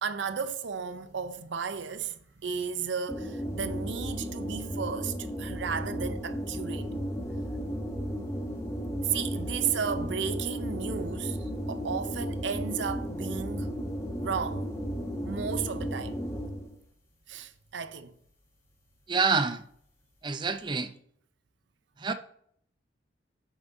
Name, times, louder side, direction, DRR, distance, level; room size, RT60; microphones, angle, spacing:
voice 1, 0.0-6.9 9.0-13.7 14.2-14.7 15.2-16.2 17.3-18.2, right 6 dB, 75° right, 0.6 m, -34 dB
sound 1, 3.1-16.8, equal, 15° left, 1.0 m, -34 dB
voice 2, 19.1-19.6 20.2-20.9 22.0-22.1, right 4 dB, 25° right, 0.5 m, -27 dB
8.7 x 7.1 x 2.7 m
head